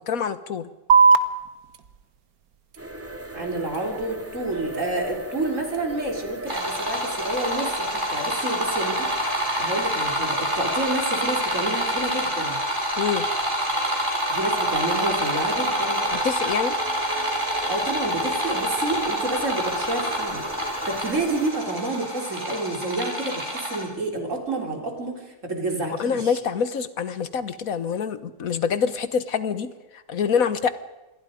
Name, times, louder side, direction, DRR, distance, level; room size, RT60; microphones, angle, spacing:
voice 1, 0.1-0.7 13.0-13.3 16.1-16.8 26.0-30.7, left 6 dB, 55° left, 13 dB, 1.5 m, -26 dB
sound 1, 0.9-7.9, right 5 dB, 60° right, 1.4 m, -26 dB
sound 2, 2.8-21.5, equal, 10° right, 2.2 m, -37 dB
voice 2, 3.3-12.6 14.0-16.0 17.7-26.4, right 2 dB, 45° right, 2 dB, 4.1 m, -29 dB
sound 3, 6.5-23.8, equal, 25° right, 6.3 m, -27 dB
27.0 x 21.5 x 5.2 m, 1.1 s
omnidirectional pair, 1.9 m